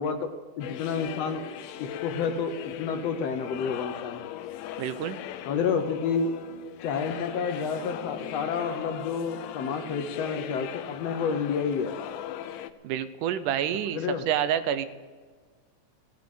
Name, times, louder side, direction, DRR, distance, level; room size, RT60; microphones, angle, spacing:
voice 1, 0.0-1.4 1.8-4.2 5.5-6.3 6.8-11.9 13.9-14.2, left 6 dB, 70° left, 7 dB, 1.7 m, -30 dB
sound 1, 0.6-12.7, left 11 dB, 85° left, 2.3 m, -39 dB
voice 2, 4.8-5.2 12.8-14.0 14.3-14.9, right 10 dB, 85° right, 12 dB, 2.3 m, -28 dB
17.5 x 7.4 x 9.1 m, 1.5 s
omnidirectional pair, 3.6 m